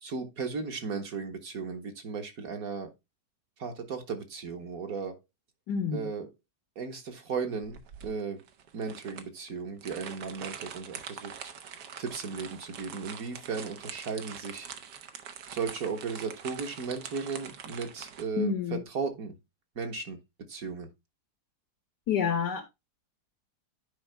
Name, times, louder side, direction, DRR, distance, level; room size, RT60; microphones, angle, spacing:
voice 1, 0.0-2.9 3.6-5.2 5.9-6.3 6.7-8.4 8.7-11.3 12.0-14.7 15.5-19.3 19.7-20.2 20.5-20.9, right 5 dB, 60° right, 1.7 m, -35 dB
voice 2, 5.7-6.1 18.4-18.8 22.1-22.6, left 6 dB, 85° left, 1.9 m, -28 dB
sound 1, 7.6-18.2, right 8 dB, 80° right, 1.5 m, -44 dB
10.5 x 5.0 x 3.4 m
omnidirectional pair, 1.8 m